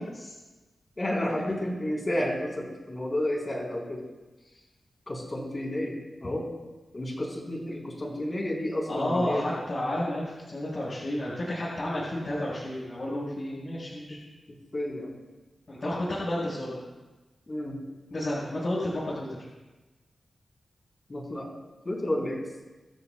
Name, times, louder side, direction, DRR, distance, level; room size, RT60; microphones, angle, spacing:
voice 1, 1.0-4.1 5.1-6.5 6.9-9.4 14.1-14.2 14.5-15.2 17.5-17.8 21.1-21.5 21.8-22.4, left 1 dB, 30° left, -2 dB, 4.2 m, -31 dB
voice 2, 8.9-14.2 15.7-16.8 18.1-19.4, left 1 dB, 45° left, -8 dB, 5.5 m, -31 dB
25.5 x 13.5 x 2.4 m, 1.1 s
wide cardioid pair, 110°, 0 cm